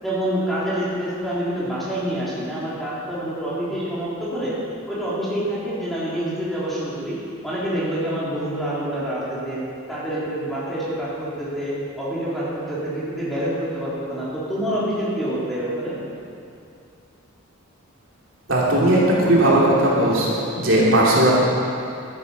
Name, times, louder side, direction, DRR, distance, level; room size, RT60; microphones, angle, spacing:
voice 1, 0.0-4.5 4.9-7.2 7.4-9.6 9.9-16.0, right 1 dB, ahead, -10 dB, 3.5 m, -27 dB
voice 2, 18.5-21.3, right 1 dB, 65° right, -6 dB, 2.9 m, -17 dB
13.0 x 11.0 x 5.5 m, 2.5 s
head